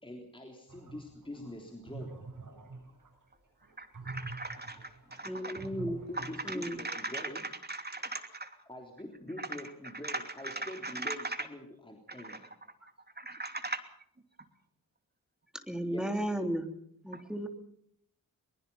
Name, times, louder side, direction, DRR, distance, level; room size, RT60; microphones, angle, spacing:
voice 1, 0.0-2.2 5.4-5.5 5.9-7.5 8.7-12.4 15.8-16.2, left 1 dB, 15° left, 2 dB, 3.7 m, -45 dB
sound 1, 0.7-6.7, right 3 dB, 60° right, 8.0 m, -46 dB
voice 2, 3.8-5.7 6.1-8.6 9.4-9.5 10.0-11.5 12.1-12.4 13.1-13.8 17.1-17.2, right 2 dB, 25° right, 7 dB, 2.8 m, -39 dB
voice 3, 5.2-6.0 6.4-6.8 15.7-16.7 17.0-17.5, equal, ahead, 5 dB, 3.2 m, -34 dB
23.0 x 21.5 x 5.6 m, 0.69 s
wide cardioid pair, 90°, 36 cm